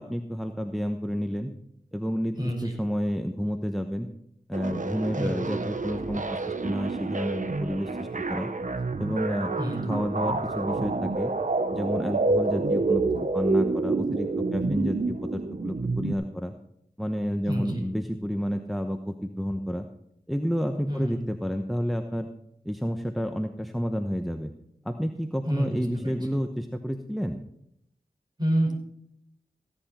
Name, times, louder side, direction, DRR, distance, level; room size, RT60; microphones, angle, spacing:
voice 1, 0.0-1.5 1.9-4.1 4.5-8.5 9.0-9.5 9.9-11.3 11.7-13.0 13.3-16.5 17.0-19.9 20.3-22.3 22.6-24.5 24.8-27.4, equal, ahead, 5 dB, 1.0 m, -30 dB
voice 2, 2.4-2.7 5.2-5.4 9.6-9.8 17.4-17.8 20.9-21.2 25.4-26.1 28.4-28.7, right 1 dB, 25° right, 0 dB, 5.6 m, -28 dB
sound 1, 4.5-16.1, right 3 dB, 55° right, 1.0 m, -28 dB
16.0 x 10.5 x 4.4 m, 0.75 s
cardioid pair, 40°, 16 cm